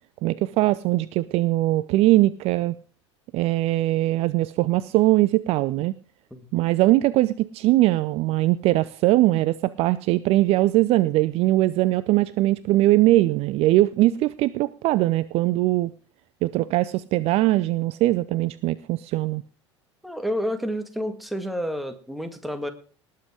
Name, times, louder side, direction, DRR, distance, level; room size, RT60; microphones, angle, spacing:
voice 1, 0.2-2.8 3.3-5.9 6.5-15.9 16.4-19.4, right 17 dB, 40° right, 18 dB, 0.5 m, -21 dB
voice 2, 6.3-6.6 20.0-22.7, equal, ahead, 7 dB, 2.0 m, -30 dB
19.0 x 7.6 x 4.8 m, 0.41 s
figure-of-eight pair, 70°, 15 cm